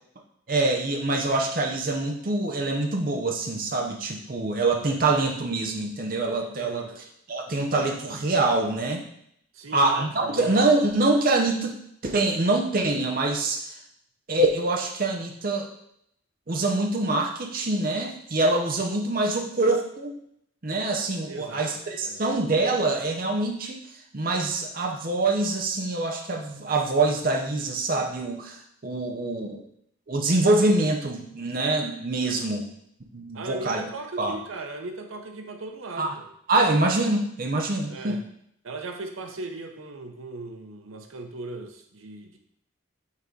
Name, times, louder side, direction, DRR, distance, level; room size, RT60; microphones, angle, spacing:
voice 1, 0.5-9.0 9.7-11.8 12.0-13.6 14.3-15.7 16.5-20.1 20.6-23.8 24.1-29.6 30.1-32.6 33.1-33.8 34.2-34.4 36.0-36.1 36.5-38.2, right 2 dB, 45° right, 2 dB, 0.7 m, -25 dB
voice 2, 6.6-6.9 9.5-10.5 21.3-22.4 32.2-32.5 33.3-36.3 37.9-38.2 38.6-42.4, right 2 dB, 90° right, 5 dB, 0.7 m, -38 dB
5.8 x 3.9 x 4.6 m, 0.72 s
head